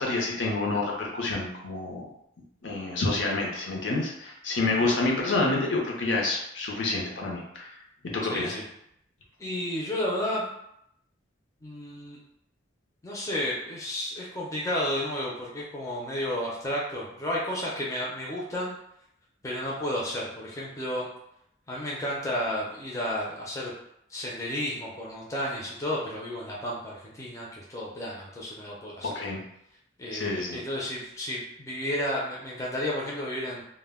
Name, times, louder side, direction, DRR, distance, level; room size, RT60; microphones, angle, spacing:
voice 1, 0.0-2.1 2.6-7.7 8.0-8.5 29.0-29.4 30.1-30.6, left 2 dB, 70° left, -1 dB, 0.6 m, -28 dB
voice 2, 8.2-8.6 9.4-10.5 11.6-12.2 13.0-18.8 19.4-21.1 21.7-23.7 24.1-29.2 30.0-33.6, left 1 dB, 15° left, -5 dB, 0.4 m, -32 dB
2.1 x 2.1 x 3.4 m, 0.77 s
head